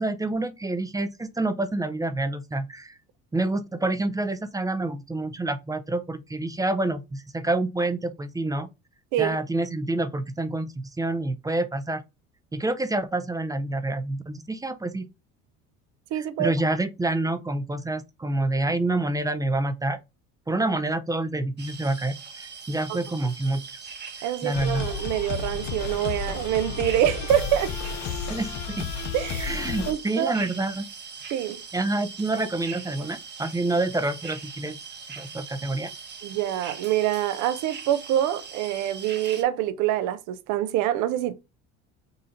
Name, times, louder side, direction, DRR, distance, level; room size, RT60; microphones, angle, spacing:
voice 1, 0.0-2.9 3.3-8.7 9.2-12.0 12.5-15.1 16.1-20.0 20.5-23.9 24.2-24.8 28.3-28.9 29.4-30.9 31.7-34.8 35.2-35.9, right 2 dB, 10° right, 0.5 m, -27 dB
voice 2, 16.1-16.5 24.2-27.8 29.1-29.6 29.9-30.3 31.3-31.6 36.2-41.3, right 12 dB, 70° right, 0.6 m, -25 dB
sound 1, 21.6-39.4, right 5 dB, 35° right, 1.0 m, -41 dB
sound 2, 24.5-29.9, left 6 dB, 65° left, 0.8 m, -32 dB
3.9 x 2.5 x 4.2 m
supercardioid pair, 90°, 31 cm